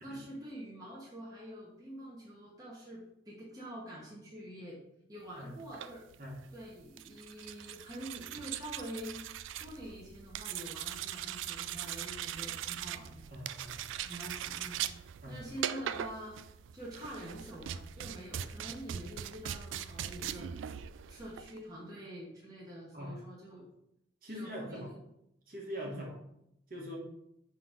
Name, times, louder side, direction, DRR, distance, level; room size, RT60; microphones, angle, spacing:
voice 1, 0.0-4.8 5.1-6.0 6.5-9.2 9.6-13.3 14.0-14.9 15.3-16.4 16.7-20.8 21.1-23.7 24.3-25.0 25.8-26.0, equal, 20° right, -5 dB, 1.1 m, -46 dB
sound 1, 5.6-21.6, right 10 dB, 85° right, 0.3 m, -41 dB
voice 2, 13.3-13.9 15.2-15.4 22.9-23.2 24.2-25.0 25.5-26.2 26.7-27.0, equal, 45° right, -2 dB, 1.5 m, -43 dB
5.8 x 3.9 x 5.0 m, 0.79 s
head